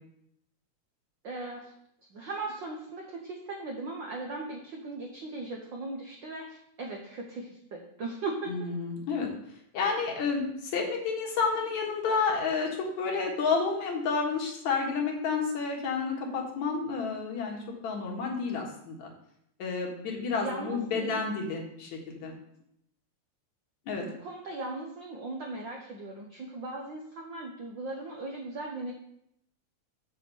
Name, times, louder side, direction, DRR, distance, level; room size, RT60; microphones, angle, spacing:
voice 1, 1.2-1.7 2.1-8.5 20.4-21.2 23.9-28.9, right 2 dB, 70° right, 1 dB, 1.1 m, -38 dB
voice 2, 8.5-9.3 9.7-12.7 13.0-19.1 19.6-22.3 23.9-24.0, left 5 dB, 75° left, 0 dB, 2.9 m, -30 dB
7.8 x 4.4 x 6.9 m, 0.75 s
omnidirectional pair, 3.3 m